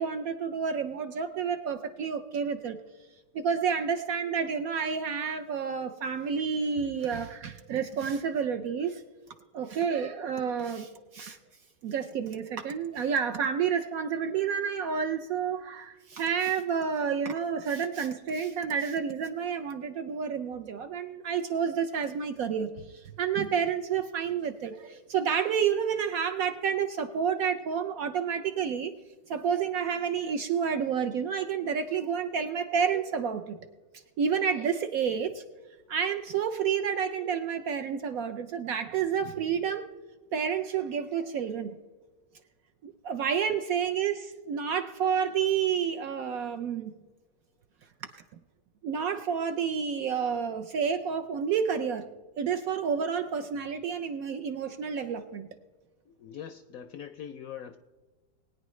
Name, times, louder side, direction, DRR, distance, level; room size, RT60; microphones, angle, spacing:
voice 1, 0.0-2.8 3.3-9.0 9.5-11.4 11.8-28.9 29.3-33.6 34.2-35.4 35.9-39.9 40.3-41.8 42.8-46.9 48.8-52.1 52.4-55.5, right 7 dB, 70° right, 8 dB, 0.8 m, -30 dB
voice 2, 56.1-57.8, left 8 dB, 75° left, 9 dB, 0.8 m, -42 dB
20.5 x 9.5 x 3.1 m, 1.3 s
omnidirectional pair, 1.9 m